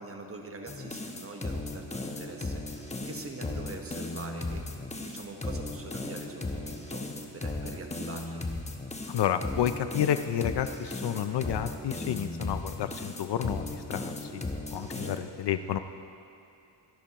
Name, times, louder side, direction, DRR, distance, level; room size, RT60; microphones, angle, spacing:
voice 1, 0.0-7.0 7.3-8.5 14.9-15.2, right 2 dB, 30° right, 3 dB, 1.2 m, -44 dB
sound 1, 0.7-15.2, left 2 dB, 15° left, 0.9 m, -36 dB
voice 2, 9.1-14.5 14.7-15.8, left 10 dB, 55° left, 10 dB, 0.5 m, -30 dB
25.0 x 11.5 x 3.0 m, 2.6 s
cardioid pair, 145°, 49 cm